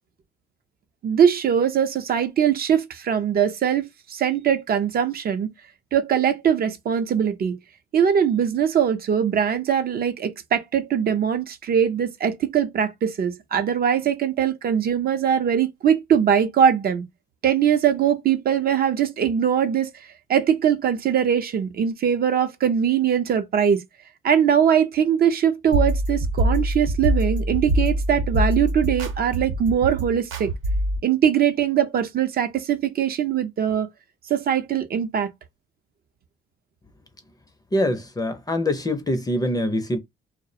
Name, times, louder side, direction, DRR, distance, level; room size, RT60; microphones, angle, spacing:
voice 1, 1.0-5.5 5.9-7.6 7.9-17.0 17.4-19.9 20.3-23.8 24.2-30.5 31.0-33.9 34.3-35.3, right 8 dB, 50° right, 0.5 m, -21 dB
sound 1, 25.7-31.0, right 1 dB, 90° right, 0.7 m, -24 dB
voice 2, 37.7-40.0, left 1 dB, 20° left, 0.5 m, -24 dB
2.3 x 2.0 x 2.6 m
cardioid pair, 90°, 20 cm